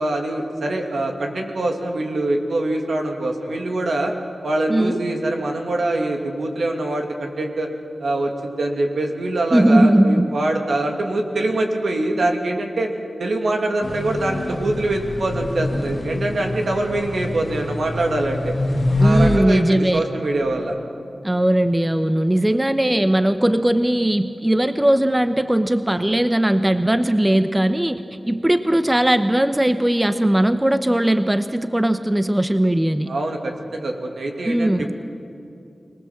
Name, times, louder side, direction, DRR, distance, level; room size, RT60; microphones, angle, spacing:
voice 1, 0.0-4.1 4.4-7.7 8.0-12.9 13.2-18.5 19.0-20.8 33.1-34.9, right 2 dB, 80° right, 2 dB, 2.7 m, -24 dB
voice 2, 4.7-5.0 9.5-10.3 19.0-20.0 21.2-28.0 28.3-33.1 34.4-34.9, right 1 dB, 15° right, 10 dB, 0.9 m, -18 dB
sound 1, 13.8-19.4, left 1 dB, 45° left, 1.6 m, -24 dB
25.0 x 19.5 x 7.5 m, 2.6 s
wide cardioid pair, 60°, 0 cm